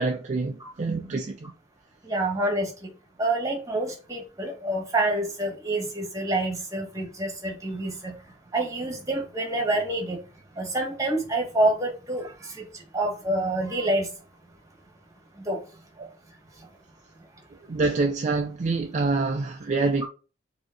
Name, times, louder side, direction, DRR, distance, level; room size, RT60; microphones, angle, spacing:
voice 1, 0.0-1.5 16.0-16.1 17.6-20.1, right 3 dB, 40° right, 0.4 m, -26 dB
voice 2, 2.0-2.9 3.2-8.1 8.5-10.2 10.6-14.1 15.4-15.6, right 1 dB, 20° right, 1.4 m, -27 dB
5.0 x 2.8 x 3.8 m
head